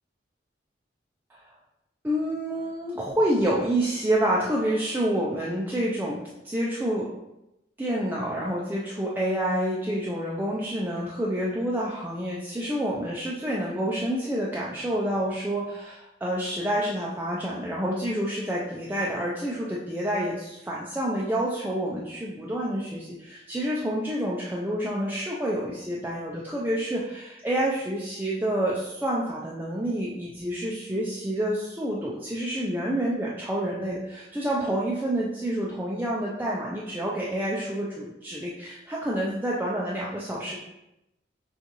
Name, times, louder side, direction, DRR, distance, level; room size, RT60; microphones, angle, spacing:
voice 1, 2.0-7.1 7.8-40.6, right 1 dB, 10° right, -5 dB, 0.4 m, -28 dB
6.5 x 2.4 x 3.0 m, 0.90 s
head